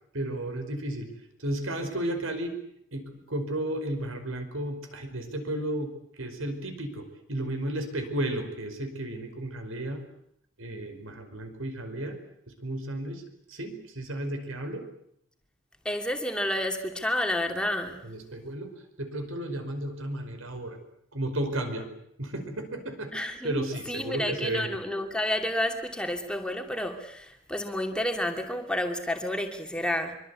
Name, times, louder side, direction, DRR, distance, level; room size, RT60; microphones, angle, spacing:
voice 1, 0.1-1.1 1.4-2.5 2.9-10.0 10.6-12.2 12.6-13.2 13.5-14.8 18.0-18.7 19.0-20.8 21.1-21.9 22.2-23.1 23.4-24.8, right 1 dB, 75° right, 5.1 m, -33 dB
voice 2, 15.8-18.0 23.1-30.2, left 1 dB, 5° left, 2.7 m, -30 dB
25.0 x 24.0 x 8.4 m
head